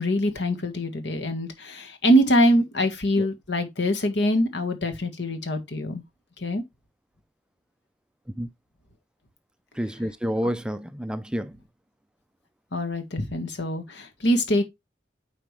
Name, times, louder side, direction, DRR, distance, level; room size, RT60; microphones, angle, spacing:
voice 1, 0.0-6.0 6.4-6.6 12.7-14.6, equal, 70° left, 1.6 m, -24 dB
voice 2, 9.7-11.6, equal, 5° right, 0.4 m, -29 dB
8.8 x 4.9 x 3.3 m
head